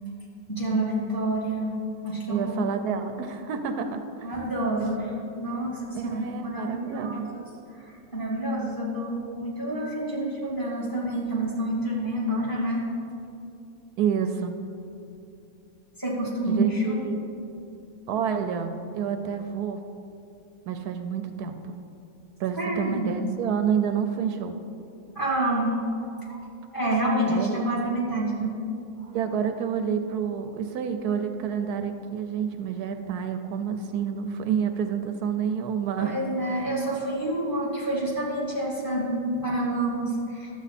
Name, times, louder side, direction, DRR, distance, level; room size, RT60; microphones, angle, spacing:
voice 1, 0.5-2.6 4.2-12.8 16.0-17.0 22.6-23.1 25.2-25.7 26.2-26.5 26.7-28.5 29.0-29.1 36.0-40.5, right 1 dB, 15° left, -6 dB, 2.3 m, -28 dB
voice 2, 2.3-4.3 5.9-7.3 14.0-14.6 16.5-17.3 18.1-19.8 20.7-21.9 22.4-24.6 27.3-27.7 29.1-36.1 36.5-36.6, right 7 dB, 80° right, 7 dB, 1.1 m, -29 dB
12.0 x 7.9 x 4.1 m, 2.7 s
omnidirectional pair, 1.7 m